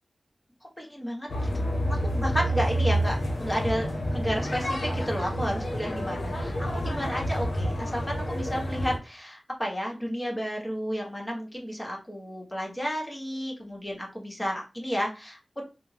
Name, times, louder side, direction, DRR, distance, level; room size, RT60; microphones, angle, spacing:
voice 1, 0.8-15.6, equal, 20° left, -1 dB, 1.2 m, -32 dB
sound 1, 1.3-9.0, equal, 75° left, 0.7 m, -29 dB
3.3 x 2.0 x 2.8 m, 0.30 s
cardioid pair, 40°, 0 cm